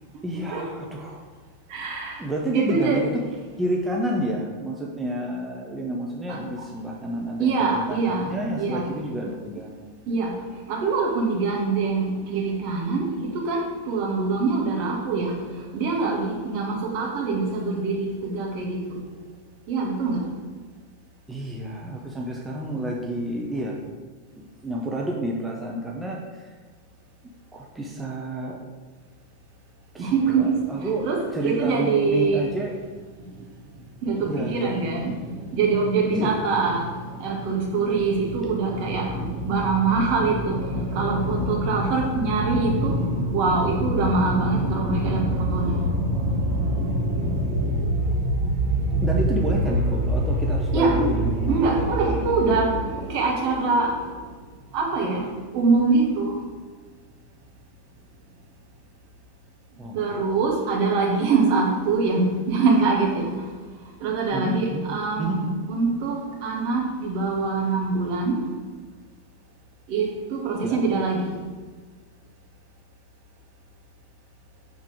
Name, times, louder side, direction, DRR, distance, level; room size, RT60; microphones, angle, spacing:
voice 1, 0.2-1.2 2.2-3.1 3.6-9.8 21.3-23.8 24.3-26.5 27.5-28.6 29.9-31.1 31.3-32.7 34.2-35.1 36.1-36.3 49.0-52.2 59.8-60.2 64.3-64.8 65.2-65.6 70.6-70.8, right 1 dB, 10° right, -2 dB, 0.6 m, -30 dB
voice 2, 1.7-2.2 2.5-3.0 6.3-6.4 7.4-8.9 10.0-10.3 10.7-15.4 15.7-19.0 19.7-20.2 30.0-32.4 33.2-33.4 34.0-49.2 49.5-54.1 54.7-56.3 59.9-63.5 64.0-65.3 65.7-68.4 69.9-71.3, right 3 dB, 45° right, -1 dB, 1.3 m, -24 dB
5.8 x 3.6 x 4.9 m, 1.4 s
figure-of-eight pair, 90°, 0 cm